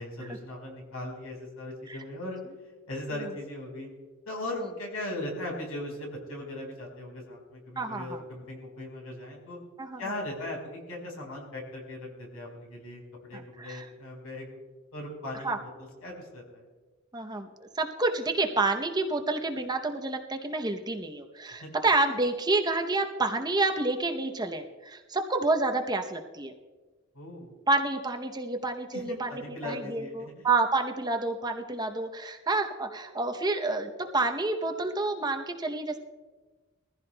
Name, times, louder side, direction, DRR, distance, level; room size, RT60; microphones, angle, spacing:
voice 1, 0.0-2.4 2.9-3.9 4.3-9.6 10.0-14.6 14.9-16.6 21.6-21.7 27.1-27.5 28.9-30.5, left 1 dB, 85° left, 0 dB, 4.5 m, -38 dB
voice 2, 7.8-8.2 9.8-10.1 13.3-13.9 15.4-15.6 17.1-17.5 17.7-26.5 27.7-36.0, right 3 dB, 20° right, 4 dB, 0.7 m, -29 dB
22.0 x 15.0 x 2.2 m, 1.3 s
head